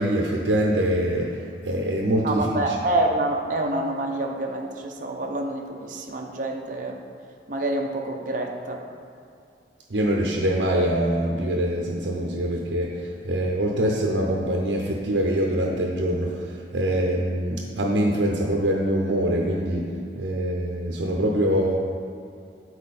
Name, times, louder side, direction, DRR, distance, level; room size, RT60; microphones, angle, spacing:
voice 1, 0.0-2.8 9.9-13.0 13.2-19.9 20.2-21.8, right 1 dB, 85° right, -1 dB, 0.7 m, -24 dB
voice 2, 2.2-7.0 7.5-8.8, right 2 dB, 45° right, 1 dB, 0.6 m, -27 dB
8.4 x 4.4 x 4.2 m, 2.4 s
head